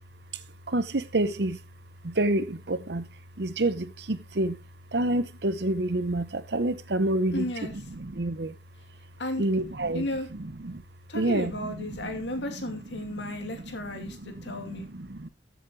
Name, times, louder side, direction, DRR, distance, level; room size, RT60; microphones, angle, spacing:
voice 1, 0.7-1.6 2.0-3.1 3.4-4.6 4.9-7.4 7.7-8.5 9.4-10.1 10.6-10.8 11.1-12.1 13.1-15.3, right 2 dB, 65° right, 0.9 m, -28 dB
voice 2, 7.3-7.7 9.2-9.4 9.9-10.3 11.1-14.9, left 1 dB, 80° left, 2.5 m, -34 dB
14.0 x 7.4 x 3.2 m
head